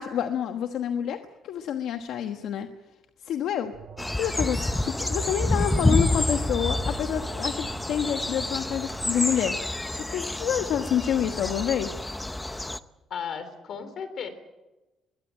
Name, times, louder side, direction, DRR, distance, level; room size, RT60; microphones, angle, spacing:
voice 1, 0.0-2.7 3.2-3.7 4.1-9.6 10.0-11.9, left 9 dB, 75° left, 6 dB, 1.3 m, -28 dB
Alarm, 3.7-9.5, right 7 dB, 50° right, 5.9 m, -46 dB
sound 1, 4.0-12.8, left 1 dB, 10° left, 0.8 m, -28 dB
voice 2, 13.1-14.3, left 7 dB, 55° left, 11 dB, 3.6 m, -35 dB
22.0 x 18.0 x 9.0 m, 1.1 s
cardioid pair, 135°, 0 cm